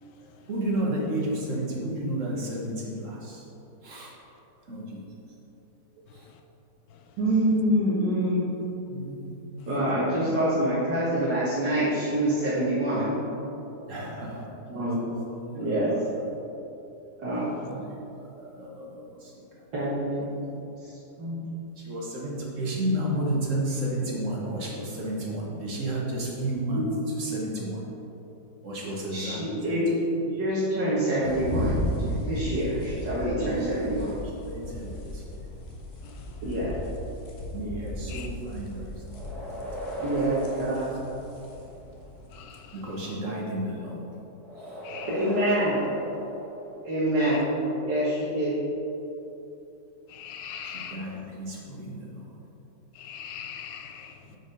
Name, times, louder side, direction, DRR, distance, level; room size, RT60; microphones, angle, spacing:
voice 1, 0.5-3.4 3.8-4.1 4.7-5.1 6.1-6.3 8.9-9.6 10.1-10.4 13.9-14.8 17.6-19.4 21.8-26.9 27.2-27.8 28.6-29.6 34.4-35.4 37.5-38.9 39.3-39.5 39.9-40.0 42.7-44.0 50.6-52.2 54.3-54.4, right 1 dB, 50° right, -3 dB, 1.6 m, -32 dB
voice 2, 7.2-8.4 9.7-13.1 14.7-15.2 15.5-15.9 17.2-17.8 19.7-20.3 20.8-20.9 21.2-21.5 26.7-26.9 29.1-34.1 36.4-36.7 40.0-41.0 45.0-45.8 46.8-47.5 47.8-48.5, right 1 dB, 80° right, -10 dB, 2.1 m, -26 dB
sound 1, 31.2-42.4, left 1 dB, 40° left, 1.1 m, -35 dB
sound 2, 39.1-41.8 44.4-47.1, equal, ahead, 1.3 m, -37 dB
voice 3, 50.1-51.0 53.0-54.1, left 8 dB, 80° left, 4 dB, 1.3 m, -40 dB
7.9 x 4.9 x 5.3 m, 2.9 s
omnidirectional pair, 1.9 m